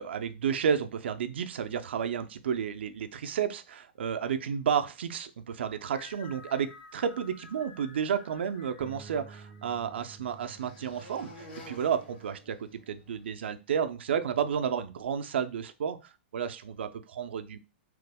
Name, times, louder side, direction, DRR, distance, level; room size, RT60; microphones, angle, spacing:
voice 1, 0.0-16.0 16.3-17.6, right 7 dB, 80° right, 10 dB, 0.4 m, -31 dB
sound 1, 6.0-10.7, left 4 dB, 60° left, 0.6 m, -53 dB
Bass guitar, 8.8-15.0, right 5 dB, 15° right, 0.3 m, -54 dB
sound 2, 9.3-13.3, left 1 dB, 80° left, 1.7 m, -52 dB
3.0 x 2.0 x 3.4 m, 0.29 s
hypercardioid pair, 140°, 6 cm